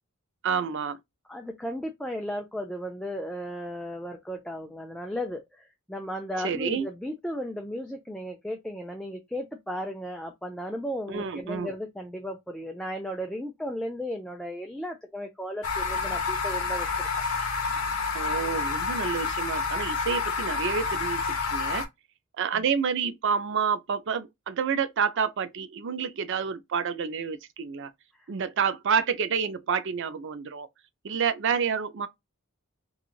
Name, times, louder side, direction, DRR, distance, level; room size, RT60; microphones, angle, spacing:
voice 1, 0.4-1.0 6.4-6.9 11.1-11.7 18.1-21.2 21.5-21.8 22.4-27.9 28.3-30.7 31.0-32.1, right 6 dB, 55° right, 0.5 m, -28 dB
voice 2, 1.3-17.1 28.1-28.3, equal, 5° left, 0.4 m, -35 dB
sound 1, 15.6-21.9, left 4 dB, 75° left, 0.8 m, -29 dB
3.1 x 2.4 x 2.3 m
head